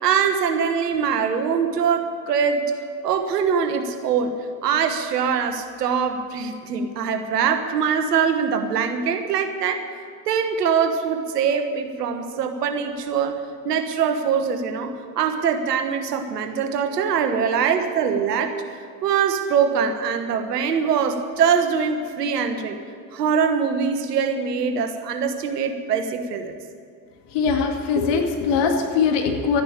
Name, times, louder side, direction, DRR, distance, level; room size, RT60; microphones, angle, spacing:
voice 1, 0.0-2.6 3.0-4.3 4.6-9.8 10.3-13.4 13.6-18.6 19.0-22.8 23.1-26.5, right 6 dB, 85° right, 7 dB, 1.4 m, -23 dB
voice 2, 27.3-29.6, left 5 dB, 60° left, 3 dB, 2.4 m, -21 dB
13.0 x 10.5 x 8.9 m, 2.4 s
hypercardioid pair, 65°, 47 cm